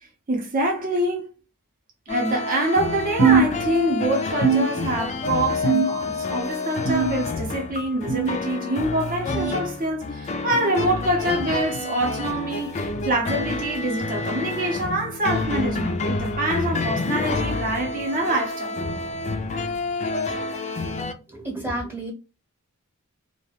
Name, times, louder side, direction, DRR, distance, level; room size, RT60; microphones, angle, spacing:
voice 1, 0.3-1.3 2.1-18.8, right 1 dB, 40° right, 0.6 m, -25 dB
sound 1, 2.1-21.1, left 3 dB, 30° left, 0.3 m, -29 dB
sound 2, 3.2-4.0 4.4-5.2 5.6-6.2 6.8-7.5 8.1-8.4 9.3-9.5 10.5-10.7 11.7-11.9 12.9-13.1 14.2-14.4 15.4-15.6 16.6-16.7 17.8-17.9, right 5 dB, 85° right, 1.4 m, -23 dB
voice 2, 21.3-22.1, right 1 dB, 10° right, 0.9 m, -30 dB
2.3 x 2.1 x 3.1 m
head